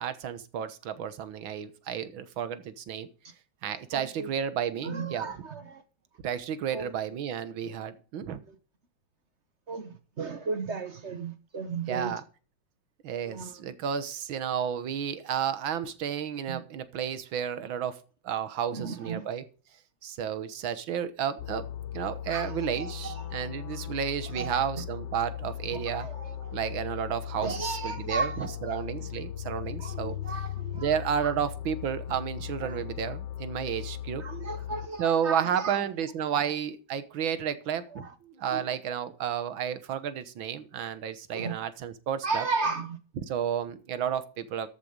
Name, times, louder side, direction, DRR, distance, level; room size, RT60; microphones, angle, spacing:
voice 1, 0.0-3.1 3.6-5.3 6.2-8.4 11.9-12.2 13.0-18.0 18.2-19.4 20.0-21.6 21.9-26.1 26.5-30.2 30.7-34.2 35.0-42.4 43.3-44.7, right 8 dB, 85° right, 1.9 m, -32 dB
voice 2, 3.9-4.3 4.8-5.8 6.7-6.9 8.5-8.6 9.7-12.2 13.2-13.6 16.5-16.6 18.7-19.3 22.3-23.5 24.3-24.7 25.7-26.5 27.4-28.9 29.6-31.0 32.1-32.2 32.6-32.8 34.2-36.5 37.9-38.1 38.4-38.6 41.3-41.6 42.2-43.0, right 4 dB, 45° right, 1.1 m, -35 dB
sound 1, 21.4-34.9, left 10 dB, 65° left, 1.4 m, -38 dB
13.5 x 7.0 x 5.1 m
omnidirectional pair, 2.1 m